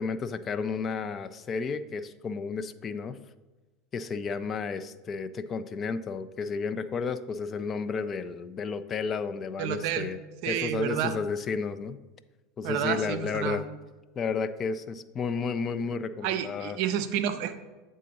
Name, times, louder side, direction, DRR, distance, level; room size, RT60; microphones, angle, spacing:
voice 1, 0.0-3.2 3.9-10.2 10.5-12.0 12.6-13.6 14.2-16.8, left 5 dB, 35° left, 12 dB, 0.3 m, -32 dB
voice 2, 9.6-10.1 10.4-11.2 12.6-13.6 16.2-17.6, right 10 dB, 55° right, 9 dB, 0.5 m, -30 dB
8.3 x 3.7 x 4.0 m, 1.2 s
figure-of-eight pair, 80°, 0 cm